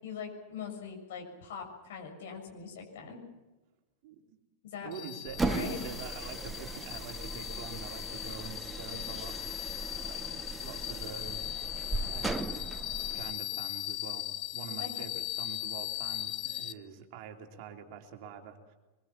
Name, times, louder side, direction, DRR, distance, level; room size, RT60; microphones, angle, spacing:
voice 1, 0.0-3.2 4.6-4.9 5.4-5.9 14.8-14.9, left 7 dB, 55° left, 1 dB, 6.9 m, -42 dB
voice 2, 4.0-4.4 4.8-12.6 13.1-14.3 14.5-18.7, right 6 dB, 45° right, 3 dB, 3.2 m, -46 dB
sound 1, 4.9-16.7, left 15 dB, 35° left, 0.9 m, -39 dB
sound 2, 5.3-13.3, right 2 dB, 10° right, 1.0 m, -38 dB
24.0 x 23.0 x 7.4 m, 1.1 s
figure-of-eight pair, 90°, 0 cm